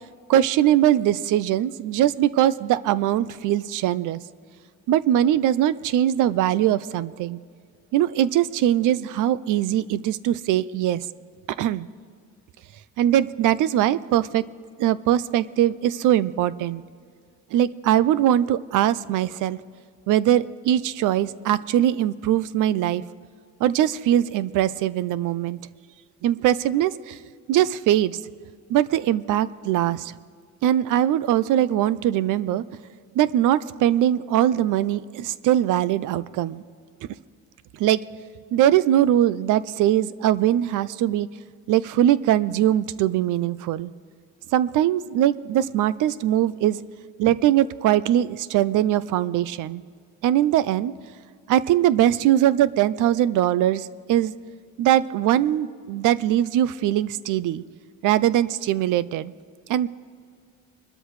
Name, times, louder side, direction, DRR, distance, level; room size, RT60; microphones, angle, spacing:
voice 1, 0.3-4.2 4.9-7.4 7.9-11.0 11.6-11.9 13.0-14.4 14.8-16.8 17.5-19.6 20.1-23.0 23.6-25.6 26.2-27.2 27.5-28.2 28.7-30.1 30.6-32.6 33.2-36.6 37.8-38.0 38.5-41.3 41.7-43.9 44.5-46.8 47.2-49.8 50.2-50.9 51.5-54.3 54.8-57.6 58.0-59.3 59.7-59.9, right 12 dB, 85° right, 17 dB, 0.5 m, -21 dB
23.5 x 13.0 x 3.2 m, 2.1 s
cardioid pair, 90°, 30 cm